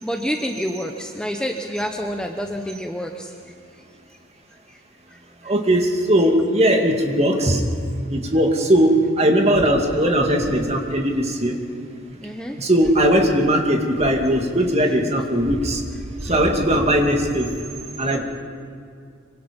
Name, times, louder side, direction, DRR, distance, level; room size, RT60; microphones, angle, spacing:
voice 1, 0.0-3.3 4.7-4.8 5.1-5.5 12.2-12.6 16.2-16.3 18.1-18.2, equal, 5° left, 3 dB, 1.0 m, -28 dB
voice 2, 5.4-7.6 8.1-11.6 12.6-15.8 16.2-17.5 18.0-18.2, equal, 30° right, 2 dB, 2.4 m, -19 dB
25.5 x 24.5 x 5.3 m, 2.4 s
head